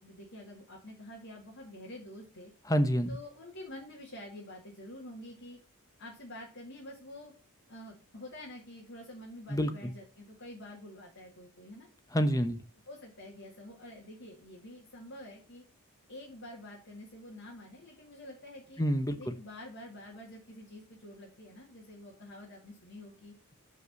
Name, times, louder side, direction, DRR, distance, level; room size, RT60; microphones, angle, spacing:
voice 1, 0.0-2.5 3.1-5.6 6.0-7.3 7.7-11.9 12.9-15.6 16.1-18.8 19.2-23.3, left 1 dB, 60° left, -3 dB, 2.3 m, -48 dB
voice 2, 2.7-3.2 9.5-9.9 12.1-12.6 18.8-19.3, equal, 15° left, 11 dB, 0.8 m, -28 dB
6.3 x 5.5 x 6.9 m, 0.36 s
head